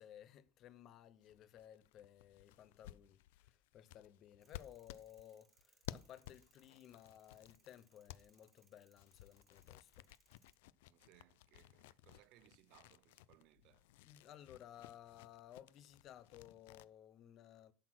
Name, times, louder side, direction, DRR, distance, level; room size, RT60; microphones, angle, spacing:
voice 1, 0.0-10.1 14.0-17.7, left 11 dB, 35° left, 0.7 m, -58 dB
sound 1, 1.2-8.6 9.0-16.9, left 14 dB, 85° left, 0.5 m, -56 dB
sound 2, 4.4-10.6, right 5 dB, 15° right, 1.1 m, -75 dB
voice 2, 10.9-13.9, right 16 dB, 45° right, 0.4 m, -68 dB
11.5 x 6.3 x 6.0 m
cardioid pair, 170°, 0 cm